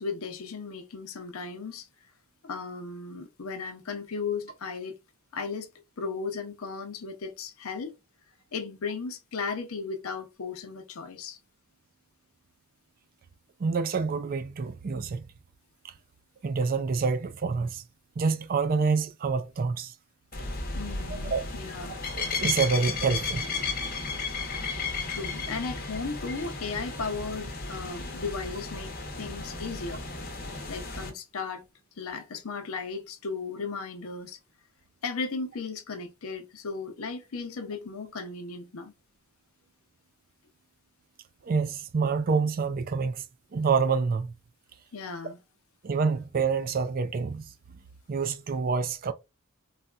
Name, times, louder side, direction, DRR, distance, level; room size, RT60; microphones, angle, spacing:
voice 1, 0.0-1.9 2.4-5.0 5.3-5.7 6.0-8.0 8.5-11.4 20.7-22.0 25.1-28.9 29.2-30.0 30.7-31.6 32.0-34.4 35.0-38.9 44.9-45.4, left 4 dB, 75° left, 0.7 m, -36 dB
voice 2, 13.6-15.2 15.8-15.9 16.4-17.8 18.2-19.9 21.1-21.4 22.1-23.4 41.4-43.2 43.5-44.3 45.8-47.4 48.1-49.1, right 5 dB, 40° right, 0.4 m, -27 dB
sound 1, 20.3-31.1, left 4 dB, 45° left, 0.9 m, -34 dB
4.0 x 2.2 x 2.3 m
head